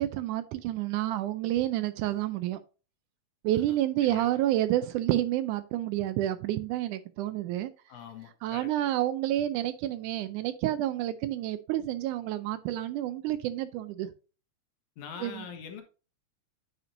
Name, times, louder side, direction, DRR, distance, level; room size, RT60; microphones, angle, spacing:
voice 1, 0.0-2.6 3.4-7.7 8.4-14.1 15.2-15.4, right 13 dB, 80° right, 1.9 m, -29 dB
voice 2, 7.9-8.7 15.0-15.8, left 7 dB, 70° left, 2.5 m, -43 dB
9.4 x 6.0 x 2.6 m
omnidirectional pair, 3.8 m